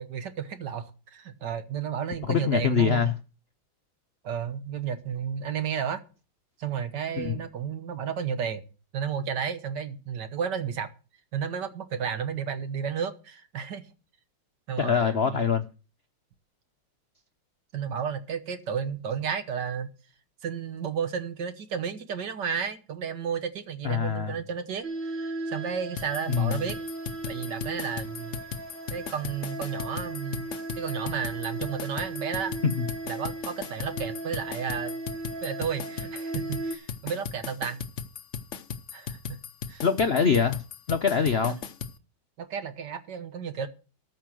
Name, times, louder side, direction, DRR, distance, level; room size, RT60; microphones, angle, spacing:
voice 1, 0.0-3.1 4.2-6.0 6.6-8.6 8.9-10.9 11.3-13.8 14.7-15.4 17.7-19.9 20.4-26.8 27.3-28.3 28.9-30.5 30.8-32.5 33.1-34.9 35.4-37.8 38.9-39.4 39.7-39.8 42.4-43.7, right 7 dB, 60° right, 1.7 m, -32 dB
voice 2, 2.2-3.1 7.2-7.4 14.8-15.7 23.8-24.3 26.3-26.6 32.6-32.9 39.8-40.6 40.9-41.5, left 6 dB, 80° left, 0.5 m, -24 dB
sound 1, 24.8-36.8, right 2 dB, 25° right, 1.6 m, -37 dB
sound 2, 26.0-42.0, left 6 dB, 55° left, 0.9 m, -37 dB
13.5 x 5.6 x 7.6 m
omnidirectional pair, 2.2 m